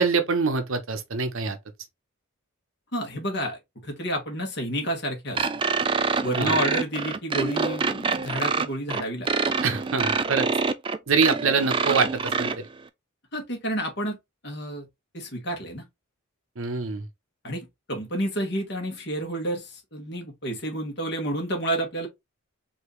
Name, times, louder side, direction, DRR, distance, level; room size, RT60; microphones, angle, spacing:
voice 1, 0.0-1.6 6.3-6.5 9.6-10.5 11.1-12.6 16.6-17.1, right 5 dB, 70° right, 0.8 m, -24 dB
voice 2, 2.9-5.5 6.2-9.3 13.3-14.2 14.4-14.8 15.1-15.8 17.4-22.1, right 1 dB, 50° left, 1.7 m, -30 dB
sound 1, 5.4-12.6, right 4 dB, 25° right, 0.3 m, -26 dB
4.7 x 2.8 x 3.1 m
head